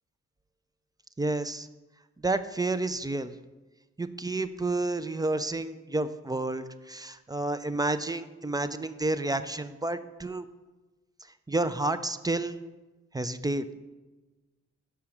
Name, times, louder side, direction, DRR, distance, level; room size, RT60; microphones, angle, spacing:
voice 1, 1.2-1.7 2.2-3.3 4.0-10.4 11.5-12.6 13.1-13.7, right 2 dB, 10° right, 11 dB, 0.5 m, -30 dB
6.0 x 5.7 x 6.6 m, 1.2 s
hypercardioid pair, 45°, 33 cm